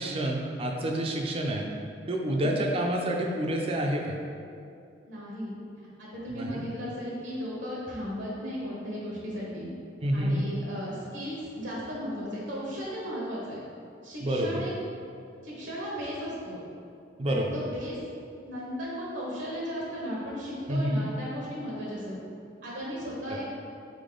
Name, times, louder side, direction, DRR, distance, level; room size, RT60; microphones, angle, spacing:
voice 1, 0.0-1.7 2.1-4.2 6.3-6.6 10.0-10.4 14.2-14.6 17.2-17.6 20.7-21.1 23.3-23.4, right 1 dB, 30° right, 1 dB, 0.4 m, -28 dB
voice 2, 5.0-5.5 6.0-9.7 10.1-13.6 14.0-14.7 15.4-16.6 17.3-18.0 18.4-22.1 22.6-23.5, equal, 70° right, -6 dB, 1.0 m, -36 dB
3.7 x 3.6 x 3.8 m, 2.5 s
head